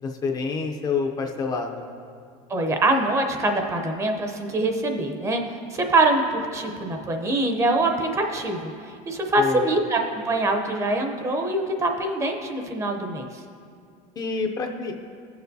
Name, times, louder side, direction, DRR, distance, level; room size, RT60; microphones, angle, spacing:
voice 1, 0.0-1.9 9.4-9.7 14.2-14.9, left 4 dB, 25° left, 3 dB, 0.5 m, -27 dB
voice 2, 2.5-8.7 9.1-13.3, right 2 dB, 20° right, 4 dB, 0.6 m, -24 dB
15.0 x 6.8 x 2.7 m, 2.3 s
cardioid pair, 155°, 15 cm